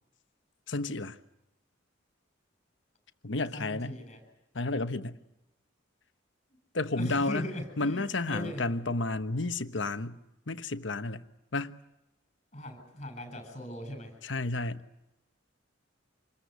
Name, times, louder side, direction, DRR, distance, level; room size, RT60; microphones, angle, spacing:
voice 1, 0.7-1.2 3.2-4.0 4.5-5.2 6.7-7.4 7.8-10.2 10.5-11.2 11.5-11.8 14.2-14.8, left 2 dB, 65° left, 1.2 m, -31 dB
voice 2, 3.5-4.2 7.0-8.6 12.5-14.1, left 1 dB, 35° left, 7.7 m, -39 dB
27.0 x 21.0 x 8.3 m
head